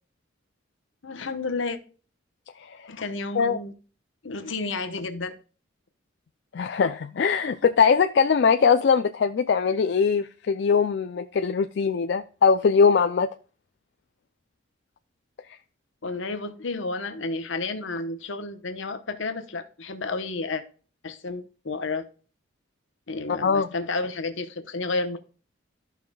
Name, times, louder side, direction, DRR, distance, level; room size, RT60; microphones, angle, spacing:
voice 1, 1.0-1.8 2.9-3.7 4.2-5.3 16.0-20.6 21.0-22.0 23.1-25.2, left 3 dB, 75° left, 9 dB, 0.9 m, -31 dB
voice 2, 2.6-2.9 3.4-3.6 6.5-13.3 23.4-23.7, left 6 dB, 60° left, 8 dB, 0.3 m, -21 dB
13.5 x 5.7 x 2.3 m, 0.37 s
head